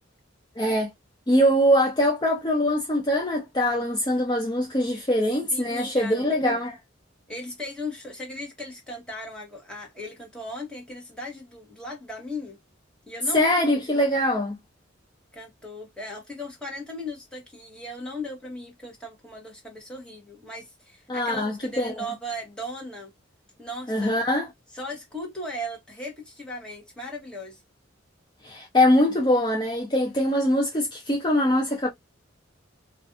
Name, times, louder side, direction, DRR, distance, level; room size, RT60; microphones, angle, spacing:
voice 1, 0.6-0.9 1.3-6.7 13.3-14.6 21.1-22.0 23.9-24.5 28.4-31.9, equal, 25° left, 0.5 m, -23 dB
voice 2, 5.5-6.6 7.3-12.6 13.1-13.8 15.3-23.1 23.6-24.2 24.7-27.6, left 1 dB, 5° left, 1.1 m, -37 dB
2.5 x 2.4 x 2.5 m
head